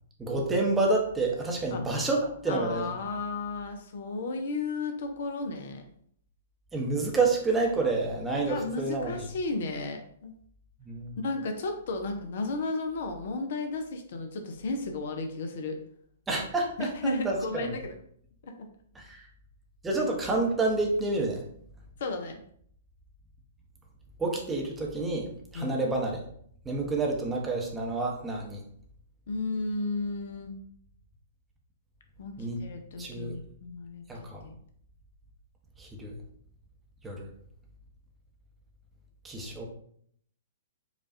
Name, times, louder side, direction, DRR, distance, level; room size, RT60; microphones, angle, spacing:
voice 1, 0.2-2.9 6.7-9.3 10.8-11.2 16.3-17.8 19.0-19.2 19.8-21.4 24.2-26.2 26.6-28.6 32.4-32.6 33.0-33.3 34.1-34.4 35.8-36.1 37.0-37.3 39.2-39.7, right 3 dB, 10° right, -1 dB, 0.7 m, -29 dB
voice 2, 2.5-5.8 8.5-10.3 11.2-15.8 16.8-17.9 18.4-18.7 22.0-22.4 25.5-25.8 29.3-30.6 32.2-32.3 32.6-34.0 34.4-34.6, left 3 dB, 50° left, 5 dB, 0.5 m, -33 dB
4.9 x 2.3 x 2.6 m, 0.64 s
figure-of-eight pair, 110°, 0 cm